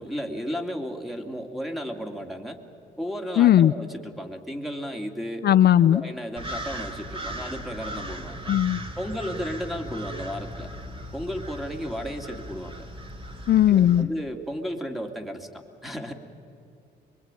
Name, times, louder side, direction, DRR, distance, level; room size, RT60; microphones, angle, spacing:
voice 1, 0.0-2.6 3.0-5.4 5.8-8.5 9.0-10.7 11.1-12.9 13.7-16.1, equal, ahead, 4 dB, 2.5 m, -34 dB
voice 2, 3.4-3.7 5.4-6.0 8.5-8.8 13.5-14.1, left 11 dB, 55° left, 13 dB, 0.5 m, -17 dB
sound 1, 6.4-14.0, equal, 25° right, 2.5 m, -37 dB
24.0 x 22.5 x 9.0 m, 2.6 s
cardioid pair, 90°, 20 cm